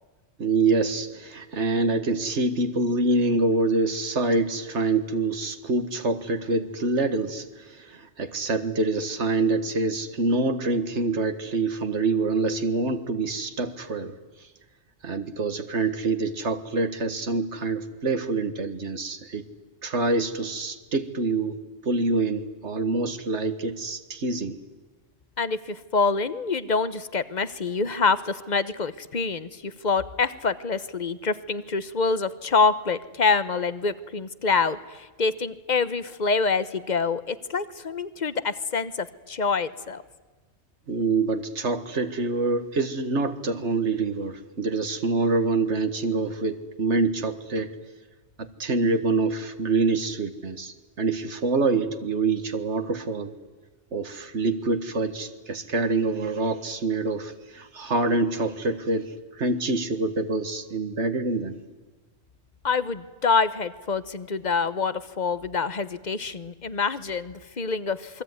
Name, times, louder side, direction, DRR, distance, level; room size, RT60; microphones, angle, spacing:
voice 1, 0.4-14.1 15.0-19.4 19.8-24.6 40.9-47.7 48.4-53.3 53.9-61.6, right 3 dB, 85° right, 8 dB, 1.9 m, -26 dB
voice 2, 25.4-40.0 62.6-68.2, left 4 dB, 40° left, 15 dB, 1.1 m, -26 dB
28.0 x 22.0 x 9.6 m, 1.3 s
omnidirectional pair, 1.2 m